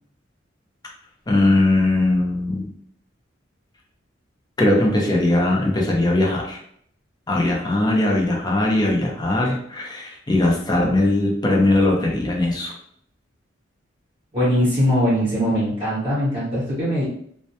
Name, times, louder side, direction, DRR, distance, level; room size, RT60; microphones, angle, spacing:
voice 1, 1.3-2.7 4.6-6.6 7.3-12.7, left 2 dB, 20° left, -1 dB, 0.5 m, -20 dB
voice 2, 14.3-17.0, equal, 25° right, -8 dB, 0.9 m, -21 dB
2.2 x 2.1 x 2.7 m, 0.65 s
head